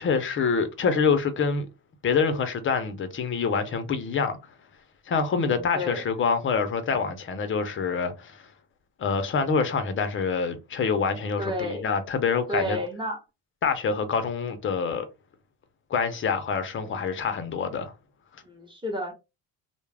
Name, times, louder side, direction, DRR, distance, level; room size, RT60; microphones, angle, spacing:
voice 1, 0.0-1.7 2.0-4.4 5.1-8.5 9.0-12.8 13.6-15.1 15.9-17.9, left 5 dB, 30° left, 0.5 m, -26 dB
voice 2, 5.4-6.0 11.4-11.9 12.5-13.2 16.8-17.0 18.4-19.1, left 1 dB, 15° right, 0.9 m, -31 dB
2.3 x 2.0 x 3.2 m
cardioid pair, 120°, 39 cm